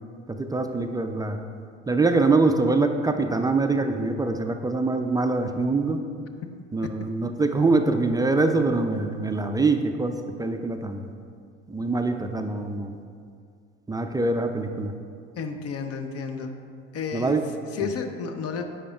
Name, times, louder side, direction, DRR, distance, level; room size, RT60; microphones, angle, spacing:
voice 1, 0.3-1.4 1.9-6.0 6.7-11.1 11.7-13.0 13.9-14.9 17.1-17.4 17.8-17.9, right 3 dB, 10° right, 6 dB, 0.3 m, -24 dB
voice 2, 15.4-16.5 16.9-17.4 17.7-18.6, left 5 dB, 45° left, 6 dB, 0.7 m, -31 dB
9.7 x 5.6 x 2.4 m, 2.3 s
hypercardioid pair, 65°, 35 cm